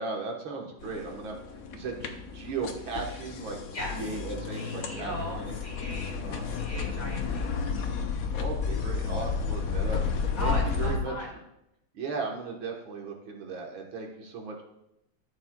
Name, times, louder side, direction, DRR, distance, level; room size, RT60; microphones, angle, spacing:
voice 1, 0.0-1.4 1.7-3.6 3.9-5.6 6.2-6.4 8.3-11.2 11.9-14.6, right 4 dB, 75° right, 1 dB, 2.1 m, -36 dB
sound 1, 0.8-11.0, left 5 dB, 60° left, 1.0 m, -32 dB
voice 2, 3.7-4.2 4.5-6.1 6.4-7.5 10.4-11.3, left 1 dB, 40° left, -3 dB, 2.8 m, -38 dB
13.5 x 7.7 x 2.3 m, 0.82 s
omnidirectional pair, 2.2 m